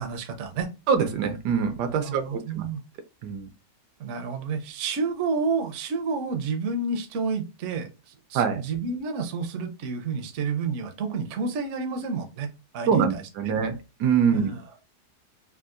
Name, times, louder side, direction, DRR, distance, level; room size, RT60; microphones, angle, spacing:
voice 1, 0.0-0.7 2.0-2.8 4.0-13.5 14.3-14.6, right 4 dB, 60° right, 0.8 m, -30 dB
voice 2, 0.9-2.6 3.2-3.5 8.3-8.6 12.9-14.5, right 6 dB, 80° right, 1.2 m, -24 dB
3.6 x 2.4 x 2.4 m
omnidirectional pair, 1.8 m